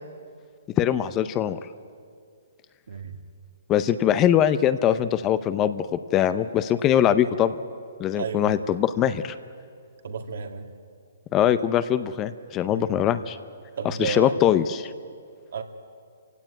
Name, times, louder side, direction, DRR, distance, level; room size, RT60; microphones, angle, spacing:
voice 1, 0.8-1.6 3.7-7.6 8.0-9.4 11.3-13.4 13.8-14.9, left 10 dB, 20° left, 13 dB, 0.6 m, -22 dB
voice 2, 2.9-3.2 8.1-8.5 10.0-10.7 12.7-12.9 13.8-14.3 15.5-15.6, right 5 dB, 70° right, 6 dB, 2.3 m, -31 dB
26.5 x 16.5 x 9.2 m, 2.3 s
hypercardioid pair, 160°, 0 cm